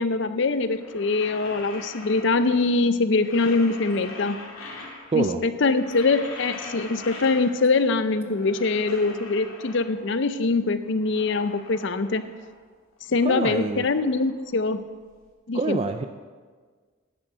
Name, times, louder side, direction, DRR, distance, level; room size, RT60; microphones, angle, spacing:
voice 1, 0.0-4.4 5.1-12.2 13.1-14.8 15.5-15.8, left 3 dB, 55° left, 12 dB, 0.5 m, -23 dB
sound 1, 0.6-2.8 3.1-5.3 5.6-7.8 8.1-10.2 10.6-12.6 12.9-15.1, left 2 dB, 85° left, 2.4 m, -42 dB
voice 2, 13.2-13.8 15.5-16.1, right 3 dB, 30° right, 7 dB, 0.3 m, -25 dB
10.0 x 6.4 x 7.5 m, 1.5 s
head